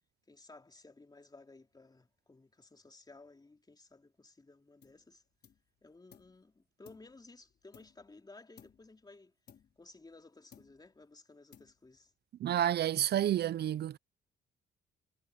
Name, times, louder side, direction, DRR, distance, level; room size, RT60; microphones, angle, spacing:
voice 1, 0.3-5.2 5.8-9.3 9.8-12.1, left 3 dB, 20° left, 3.6 m, -57 dB
sound 1, 4.8-5.1 5.4-6.4 6.8-8.2 8.6-9.0 9.5-10.2 10.5-11.0 11.5-12.1, left 8 dB, 55° left, 5.3 m, -61 dB
voice 2, 12.4-14.0, right 11 dB, 55° right, 0.5 m, -30 dB
cardioid pair, 90°, 20 cm